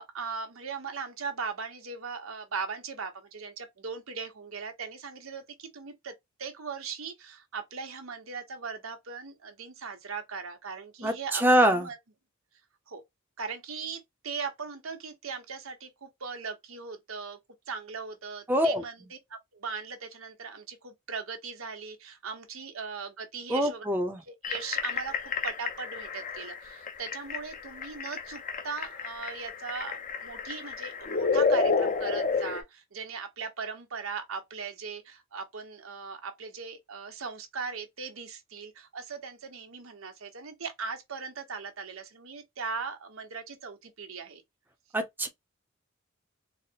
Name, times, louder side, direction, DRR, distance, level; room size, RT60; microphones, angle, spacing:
voice 1, 0.0-6.1 6.4-12.0 12.9-13.0 13.4-17.4 17.7-23.8 24.3-25.1 25.4-44.4, right 5 dB, 90° right, 1.0 m, -39 dB
voice 2, 11.0-11.9 18.5-18.8 23.5-24.2 44.9-45.3, equal, 10° right, 0.6 m, -24 dB
sound 1, 24.4-32.6, left 4 dB, 40° left, 0.6 m, -30 dB
4.1 x 2.1 x 2.7 m
head